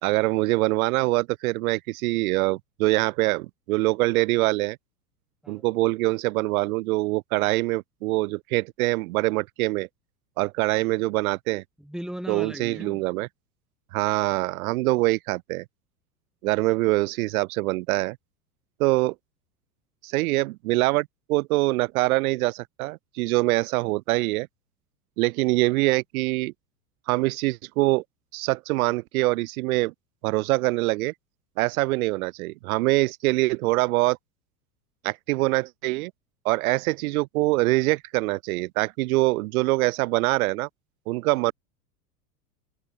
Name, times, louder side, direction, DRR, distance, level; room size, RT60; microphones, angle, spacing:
voice 1, 0.0-4.8 5.5-9.9 10.4-11.6 12.3-13.3 13.9-15.6 16.4-18.2 18.8-19.1 20.0-24.5 25.2-26.5 27.1-28.0 28.3-29.9 30.2-31.1 31.6-34.2 35.0-36.1 36.4-40.7 41.1-41.5, right 21 dB, 60° right, 4.0 m, -24 dB
voice 2, 11.8-13.0, equal, ahead, 6.6 m, -37 dB
hypercardioid pair, 90°, 49 cm